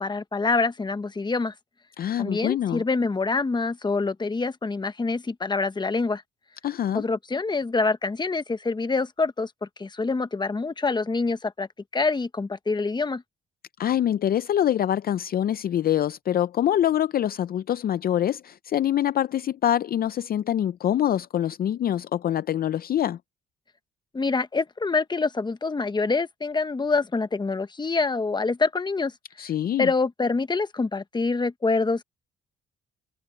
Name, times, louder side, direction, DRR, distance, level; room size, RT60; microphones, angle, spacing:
voice 1, 0.0-1.5 2.2-6.2 6.9-11.7 11.9-13.2 24.1-29.1 29.8-32.0, left 3 dB, 20° left, 1.2 m, -26 dB
voice 2, 2.0-2.8 6.6-7.0 13.8-23.2 29.4-29.9, left 11 dB, 50° left, 0.5 m, -25 dB
cardioid pair, 90°, 20 cm